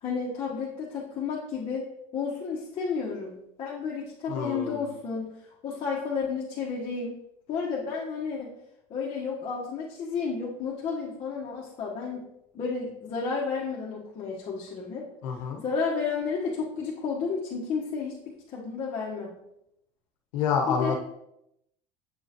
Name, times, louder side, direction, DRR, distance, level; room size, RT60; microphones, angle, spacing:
voice 1, 0.0-1.9 2.1-5.3 5.6-7.1 7.5-8.5 8.9-12.2 12.5-15.0 15.6-18.1 18.5-19.3 20.7-20.9, left 5 dB, 35° left, -5 dB, 1.3 m, -32 dB
voice 2, 4.3-4.9 15.2-15.6 20.3-20.9, left 6 dB, 85° left, 2 dB, 1.2 m, -28 dB
7.6 x 5.4 x 3.0 m, 0.82 s
supercardioid pair, 130°, 16 cm